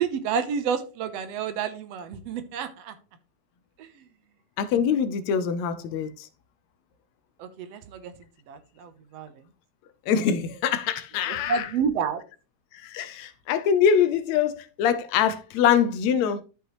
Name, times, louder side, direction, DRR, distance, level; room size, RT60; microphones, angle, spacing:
voice 1, 0.0-3.0 3.8-3.9 7.4-8.1 8.5-9.3 11.5-12.2, right 6 dB, 70° right, 1.8 m, -29 dB
voice 2, 4.6-6.3 10.1-11.7 12.7-16.4, left 7 dB, 75° left, 2.0 m, -24 dB
13.0 x 5.3 x 3.0 m
omnidirectional pair, 3.3 m